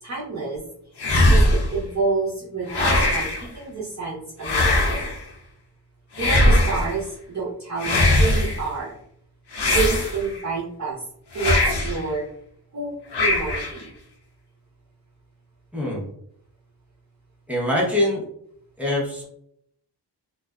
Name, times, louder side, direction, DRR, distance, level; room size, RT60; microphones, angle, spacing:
voice 1, 0.0-0.6 1.3-5.1 6.2-9.0 9.7-11.0 11.3-12.3 12.7-13.9, right 4 dB, 40° right, -5 dB, 0.7 m, -28 dB
sound 1, 1.0-1.8 2.7-3.5 4.4-5.2 6.2-6.9 7.8-8.6 9.5-10.4 11.3-12.0 13.1-13.8, left 1 dB, 70° left, 0.7 m, -20 dB
voice 2, 15.7-16.0 17.5-18.2 18.8-19.2, left 1 dB, 5° right, -5 dB, 0.7 m, -23 dB
2.4 x 2.3 x 2.2 m, 0.69 s
wide cardioid pair, 140°, 43 cm